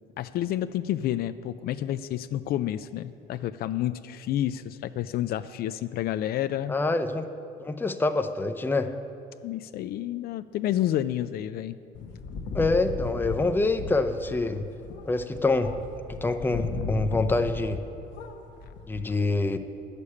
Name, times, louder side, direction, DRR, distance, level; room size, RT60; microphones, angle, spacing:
voice 1, 0.2-6.8 9.4-11.8, left 12 dB, 65° left, 12 dB, 0.4 m, -29 dB
voice 2, 6.7-7.3 7.6-8.9 12.5-14.6 15.1-15.7 16.1-17.8 18.9-19.6, left 3 dB, 10° left, 8 dB, 0.6 m, -26 dB
sound 1, 11.9-17.9 18.1-19.0, left 4 dB, 90° left, 1.1 m, -36 dB
9.9 x 6.7 x 8.4 m, 2.6 s
cardioid pair, 110°, 17 cm